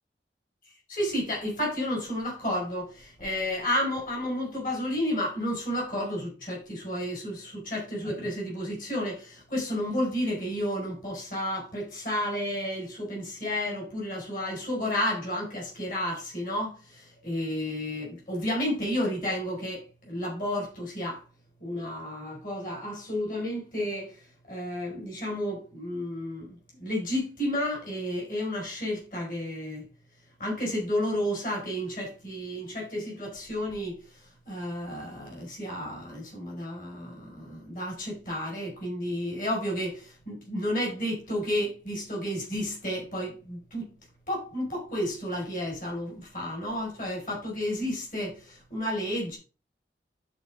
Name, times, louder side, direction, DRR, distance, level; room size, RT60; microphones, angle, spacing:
voice 1, 0.9-21.2 21.6-24.1 24.5-26.5 26.8-29.8 30.4-34.0 34.5-43.9 44.3-49.4, left 1 dB, 50° left, 5.2 m, -31 dB
12.0 x 4.8 x 3.6 m
head